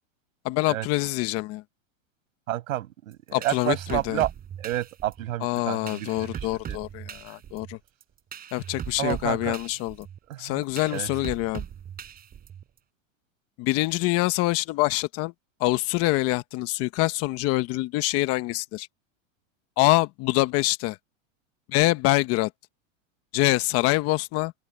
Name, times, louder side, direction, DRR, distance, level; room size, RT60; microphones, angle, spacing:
voice 1, 0.4-1.6 3.3-4.2 5.4-7.8 8.5-10.1 10.4-11.6 13.6-15.3 15.6-18.9 19.8-21.0 21.7-22.5 23.3-24.5, left 19 dB, 35° left, 1.1 m, -25 dB
voice 2, 2.5-4.3 4.6-6.3 6.7-6.8 9.0-9.6 10.3-10.6 10.9-11.1, right 14 dB, 90° right, 5.5 m, -30 dB
sound 1, 3.1-12.8, right 9 dB, 20° right, 5.6 m, -39 dB
open air
supercardioid pair, 150°, 39 cm